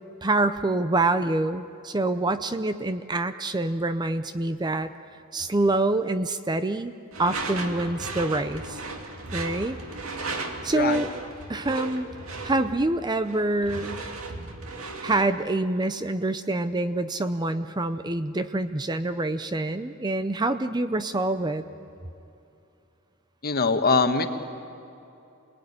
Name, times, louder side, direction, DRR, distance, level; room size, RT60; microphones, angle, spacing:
voice 1, 0.2-4.9 5.3-8.8 9.3-9.8 10.6-11.1 11.5-12.1 12.4-14.0 15.0-21.6, right 2 dB, 20° right, 11 dB, 0.6 m, -26 dB
Door / Screech, 7.1-15.3, right 3 dB, 65° right, 2.3 m, -36 dB
voice 2, 10.7-11.0 23.4-24.3, left 4 dB, 45° left, 7 dB, 1.4 m, -22 dB
27.5 x 19.5 x 9.9 m, 2.8 s
head